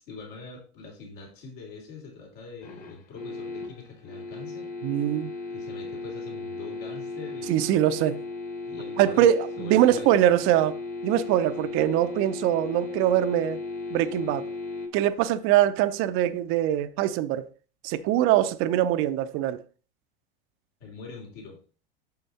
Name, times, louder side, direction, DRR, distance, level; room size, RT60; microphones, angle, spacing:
voice 1, 0.0-4.7 5.5-7.7 8.6-9.3 9.6-10.3 20.8-21.6, left 4 dB, 60° left, 3.1 m, -43 dB
sound 1, 2.6-14.9, left 3 dB, 30° left, 1.6 m, -36 dB
voice 2, 4.8-5.3 7.5-8.2 9.0-10.7 11.0-13.6 13.9-14.5 14.9-17.5 17.8-19.6, right 12 dB, 45° right, 0.6 m, -23 dB
6.5 x 5.7 x 4.1 m
hypercardioid pair, 90°, 29 cm